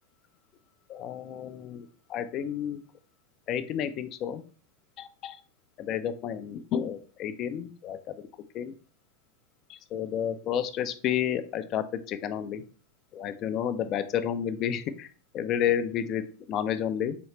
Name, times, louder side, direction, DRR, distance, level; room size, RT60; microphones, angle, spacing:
voice 1, 0.9-2.8 3.5-4.4 5.0-5.4 5.8-8.1 8.5-8.7 9.7-12.6 13.1-15.1 15.3-17.2, left 9 dB, 35° left, 11 dB, 0.4 m, -31 dB
4.3 x 3.1 x 2.9 m, 0.40 s
figure-of-eight pair, 90°, 0 cm